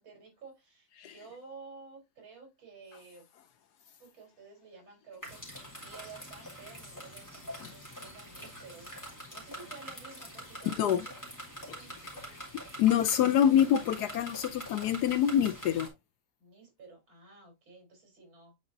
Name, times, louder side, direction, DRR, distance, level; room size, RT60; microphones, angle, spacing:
voice 1, 0.0-3.3 4.0-5.4 5.7-11.1 11.6-12.5 13.0-13.1 16.4-18.5, right 4 dB, 75° right, 4.4 m, -52 dB
sound 1, 5.2-15.9, equal, 10° left, 2.2 m, -45 dB
voice 2, 10.6-11.1 11.7-11.8 12.8-15.9, left 10 dB, 75° left, 0.9 m, -26 dB
9.7 x 4.1 x 2.6 m
omnidirectional pair, 2.2 m